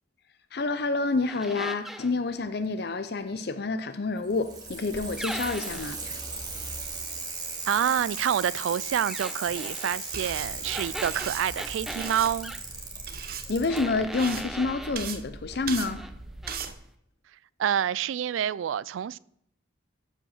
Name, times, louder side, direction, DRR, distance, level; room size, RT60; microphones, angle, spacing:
voice 1, 0.5-6.0 13.5-16.0, left 3 dB, 55° left, 0.6 m, -28 dB
sound 1, 1.3-2.1 5.2-6.0 9.1-10.0 10.6-12.6 13.7-15.0 15.5-16.1 16.4-16.7, right 1 dB, ahead, 0.5 m, -39 dB
Bicycle, 4.2-13.8 14.9-15.0, right 4 dB, 20° right, 1.9 m, -37 dB
voice 2, 7.7-12.5 17.6-19.2, right 9 dB, 85° right, 0.3 m, -28 dB
sound 2, 10.1-16.7, right 6 dB, 50° right, 0.9 m, -39 dB
14.0 x 5.3 x 6.5 m
head